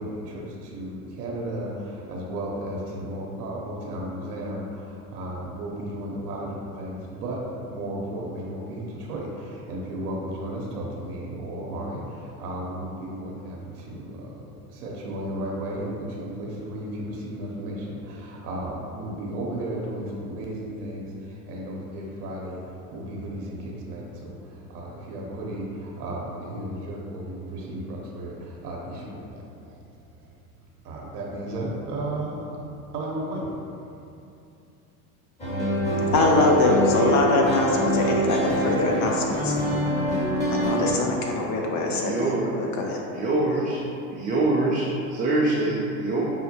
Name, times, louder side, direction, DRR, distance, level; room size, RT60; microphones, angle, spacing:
voice 1, 0.0-29.8 30.2-30.3 30.8-32.6 32.9-33.5, right 1 dB, 80° right, -3 dB, 0.8 m, -34 dB
sound 1, 35.4-40.9, right 1 dB, 15° left, 1.1 m, -25 dB
voice 2, 36.1-39.6 40.5-42.3 42.6-43.0, left 2 dB, 40° left, 0 dB, 0.5 m, -23 dB
voice 3, 41.9-42.5 43.1-43.8 44.1-46.2, right 2 dB, 20° right, -6 dB, 0.3 m, -24 dB
5.5 x 2.1 x 2.7 m, 2.7 s
hypercardioid pair, 95°, 45 cm